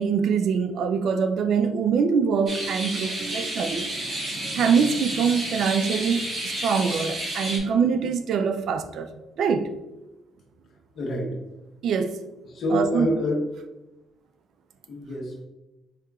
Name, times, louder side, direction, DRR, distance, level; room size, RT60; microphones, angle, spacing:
voice 1, 0.0-3.9 4.5-9.1 9.4-9.7 11.8-12.2 12.7-13.1, right 6 dB, 70° right, 0.3 m, -24 dB
sound 1, 2.5-7.6, right 1 dB, 45° right, 1.3 m, -31 dB
voice 2, 10.9-11.4 12.5-13.4 14.9-15.5, left 1 dB, 55° left, 1.1 m, -27 dB
4.8 x 2.8 x 2.3 m
cardioid pair, 90°, 0 cm